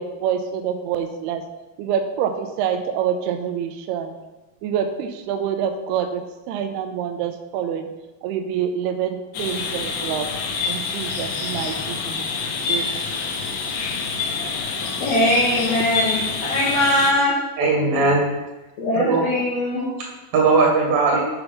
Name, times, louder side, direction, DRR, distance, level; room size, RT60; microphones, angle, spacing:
voice 1, 0.0-1.4 1.8-4.2 4.6-7.8 8.2-10.3 10.7-12.2 12.7-13.0, right 8 dB, 90° right, 2.6 m, -26 dB
sound 1, 9.3-17.1, left 4 dB, 80° left, 2.9 m, -27 dB
voice 2, 14.4-17.4 18.8-19.8, left 1 dB, 60° left, 1.9 m, -21 dB
voice 3, 17.6-18.3 19.0-19.2 19.7-19.8 20.3-21.2, right 3 dB, 55° right, 2.8 m, -18 dB
6.6 x 6.2 x 5.6 m
omnidirectional pair, 4.6 m